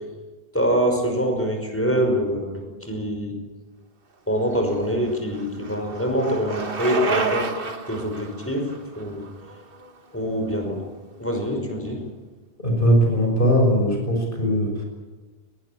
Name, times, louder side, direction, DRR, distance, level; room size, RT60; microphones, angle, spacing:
voice 1, 0.5-3.3 4.3-7.5 7.9-8.7 9.0-9.2 10.1-10.8 11.2-12.0, equal, 10° left, 3 dB, 5.5 m, -24 dB
Bicycle, 4.5-10.5, right 4 dB, 60° right, 1.7 m, -31 dB
voice 2, 12.6-14.8, equal, 55° left, 1 dB, 6.3 m, -20 dB
22.5 x 19.5 x 8.8 m, 1.3 s
omnidirectional pair, 1.1 m